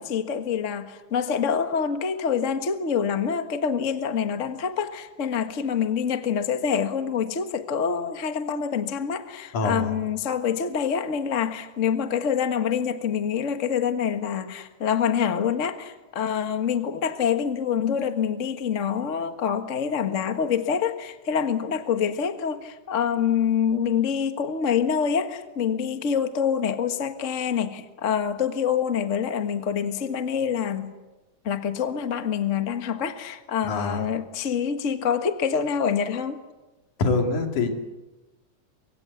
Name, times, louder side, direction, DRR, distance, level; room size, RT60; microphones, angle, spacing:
voice 1, 0.0-30.9 31.4-36.4, left 7 dB, 40° left, 8 dB, 1.1 m, -26 dB
voice 2, 9.5-9.9 33.7-34.0 37.0-37.8, left 3 dB, 75° left, 4 dB, 4.0 m, -24 dB
25.0 x 24.0 x 8.3 m, 1.1 s
omnidirectional pair, 3.5 m